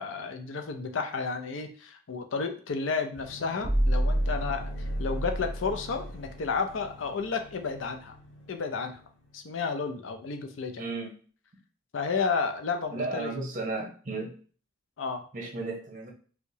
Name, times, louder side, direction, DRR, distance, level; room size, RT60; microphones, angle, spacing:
voice 1, 0.0-8.1 8.5-9.0 9.3-10.9 11.9-13.3 15.0-15.2, left 5 dB, 75° left, 6 dB, 0.5 m, -32 dB
sound 1, 3.2-9.4, right 1 dB, 60° left, 1.0 m, -32 dB
voice 2, 10.8-11.1 12.9-14.3 15.3-16.1, right 3 dB, 40° right, 0 dB, 0.9 m, -34 dB
4.6 x 2.1 x 2.7 m, 0.42 s
head